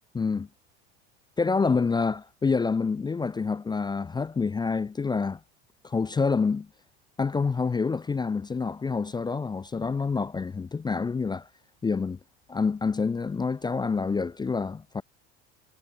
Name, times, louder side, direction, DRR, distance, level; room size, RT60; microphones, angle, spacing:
voice 1, 0.1-0.5 1.4-5.4 5.8-6.7 7.2-11.5 11.8-12.2 12.5-15.0, left 4 dB, 15° left, 0.5 m, -27 dB
hypercardioid pair, 90°, 33 cm